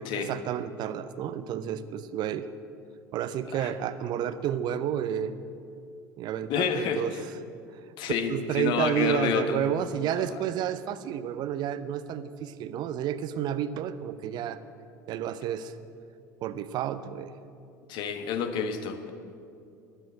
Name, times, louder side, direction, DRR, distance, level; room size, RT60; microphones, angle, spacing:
voice 1, 0.0-2.5 3.1-5.4 6.2-7.1 7.7-7.8 8.3-14.6 15.1-15.7 16.4-17.3, right 9 dB, 45° right, 13 dB, 0.7 m, -31 dB
voice 2, 6.5-7.2 8.0-9.7 10.2-10.3 17.9-19.1, left 6 dB, 50° left, 8 dB, 1.3 m, -29 dB
12.5 x 11.5 x 7.7 m, 2.5 s
figure-of-eight pair, 70°, 10 cm